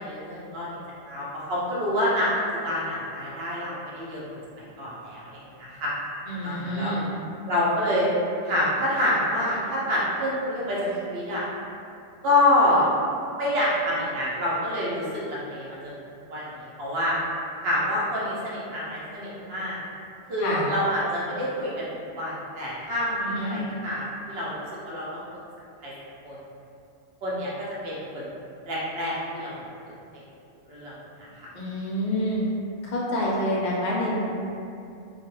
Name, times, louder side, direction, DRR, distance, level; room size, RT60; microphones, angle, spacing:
voice 1, 0.0-4.2 4.6-5.9 6.4-7.0 7.5-8.1 8.4-11.5 12.2-12.9 13.3-15.9 16.3-17.2 17.6-19.8 20.3-21.9 22.1-25.2 25.8-25.9 26.2-26.4 27.2-28.2 28.7-29.6 30.7-30.9 31.2-31.4, left 1 dB, 65° right, -7 dB, 0.9 m, -27 dB
voice 2, 6.3-7.1 20.4-20.7 23.2-23.6 31.5-32.4 32.8-34.3, equal, 55° left, -5 dB, 0.5 m, -27 dB
2.2 x 2.2 x 3.0 m, 2.6 s
omnidirectional pair, 1.2 m